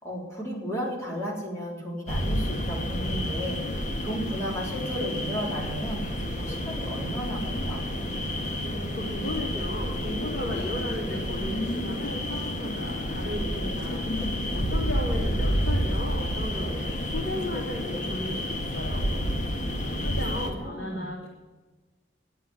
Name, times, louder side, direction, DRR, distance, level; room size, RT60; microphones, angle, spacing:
voice 1, 0.0-3.6 4.0-7.8 19.7-20.0 20.6-21.1, equal, 15° left, -3 dB, 3.8 m, -34 dB
sound 1, 2.1-20.5, equal, 40° left, 1.6 m, -30 dB
voice 2, 8.6-19.0 20.0-21.3, left 1 dB, 75° left, -4 dB, 2.9 m, -35 dB
11.5 x 8.2 x 9.6 m, 1.2 s
head